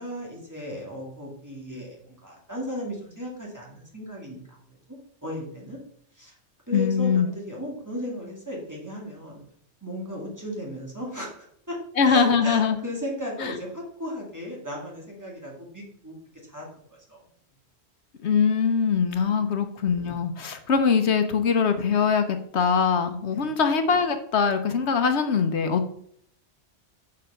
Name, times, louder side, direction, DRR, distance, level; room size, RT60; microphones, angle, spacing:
voice 1, 0.0-4.6 5.2-5.8 6.2-6.3 6.7-9.4 9.8-11.3 11.7-11.8 12.0-16.2 16.5-17.2 23.3-23.6, equal, 15° right, -3 dB, 2.9 m, -35 dB
voice 2, 6.7-7.3 12.0-12.8 13.4-13.5 18.2-25.9, left 6 dB, 75° left, 8 dB, 1.1 m, -22 dB
7.3 x 6.6 x 5.6 m, 0.66 s
omnidirectional pair, 1.1 m